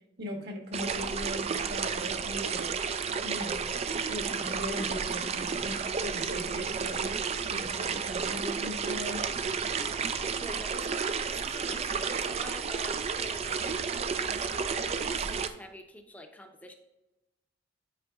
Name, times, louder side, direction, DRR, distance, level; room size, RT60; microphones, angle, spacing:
voice 1, 0.2-2.7 3.0-3.6 4.1-7.1 7.5-9.2, equal, 55° right, 2 dB, 1.2 m, -39 dB
sound 1, 0.7-15.5, right 6 dB, 30° right, 0.3 m, -32 dB
voice 2, 10.3-16.7, left 1 dB, 10° left, 4 dB, 0.7 m, -47 dB
9.7 x 4.9 x 2.3 m, 0.98 s
head